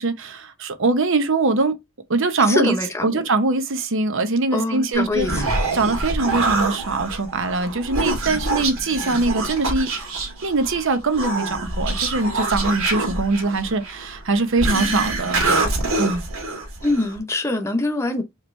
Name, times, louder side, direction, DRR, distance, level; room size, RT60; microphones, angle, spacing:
voice 1, 0.0-1.8 2.1-2.8 3.0-5.3 5.7-10.1 10.4-16.2, right 3 dB, 65° right, 0.9 m, -22 dB
voice 2, 2.5-3.2 4.5-5.4 16.8-18.2, left 2 dB, 15° left, 0.8 m, -23 dB
Human voice, 4.9-17.2, right 2 dB, 85° right, 1.9 m, -25 dB
4.9 x 3.0 x 3.2 m
head